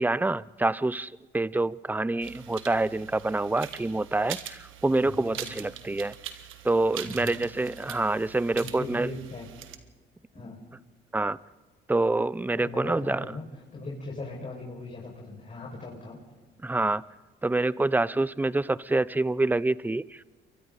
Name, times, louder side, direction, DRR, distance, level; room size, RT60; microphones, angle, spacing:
voice 1, 0.0-6.1 6.6-9.1 11.1-11.4 11.9-13.2 16.6-17.0 17.4-20.2, right 2 dB, 10° right, 19 dB, 0.5 m, -26 dB
sound 1, 2.2-9.8, right 10 dB, 80° right, 1.4 m, -43 dB
voice 2, 4.9-5.5 7.0-7.4 8.5-9.5 10.3-10.6 12.5-13.4 13.7-16.2, left 2 dB, 35° left, -3 dB, 5.9 m, -39 dB
28.5 x 23.5 x 4.1 m, 1.3 s
cardioid pair, 90°, 20 cm